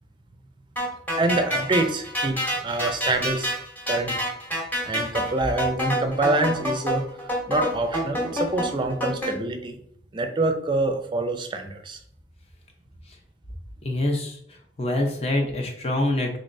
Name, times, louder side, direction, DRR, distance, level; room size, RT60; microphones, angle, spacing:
sound 1, 0.8-9.3, equal, 10° left, 1.0 m, -27 dB
voice 1, 1.2-3.5 3.9-4.4 4.9-9.8 10.1-12.0, right 2 dB, 25° right, 6 dB, 0.4 m, -26 dB
voice 2, 13.8-14.4 14.8-16.4, left 1 dB, 35° left, 3 dB, 0.7 m, -25 dB
3.9 x 3.3 x 2.6 m, 0.64 s
head